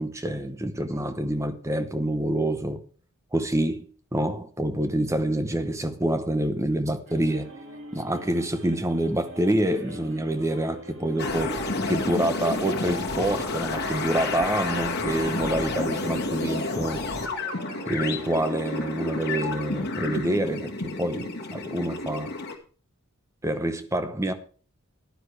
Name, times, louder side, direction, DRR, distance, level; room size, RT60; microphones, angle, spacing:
voice 1, 0.0-2.8 3.3-7.5 7.9-11.6 11.9-17.0 17.9-22.3 23.4-24.3, right 1 dB, 15° right, 0.9 m, -27 dB
sound 1, 7.1-19.9, right 2 dB, 55° right, 2.2 m, -44 dB
sound 2, 11.2-22.6, left 3 dB, 50° left, 1.6 m, -30 dB
14.5 x 10.5 x 3.3 m
head